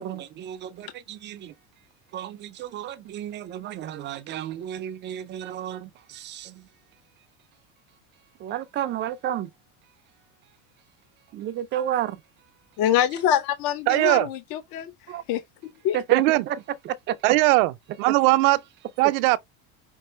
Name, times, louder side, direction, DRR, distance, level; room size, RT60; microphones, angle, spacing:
voice 1, 0.0-1.5 2.1-6.7 8.4-9.5 11.3-12.2 15.1-15.2 15.9-16.6 16.8-17.4, right 11 dB, 25° right, 0.4 m, -32 dB
voice 2, 12.8-15.4 15.8-16.0, left 10 dB, 55° left, 0.7 m, -25 dB
voice 3, 13.9-14.3 16.1-16.5 17.2-17.7 18.0-18.6 19.0-19.4, right 20 dB, 70° right, 0.6 m, -19 dB
5.4 x 2.5 x 3.2 m
cardioid pair, 155°, 43 cm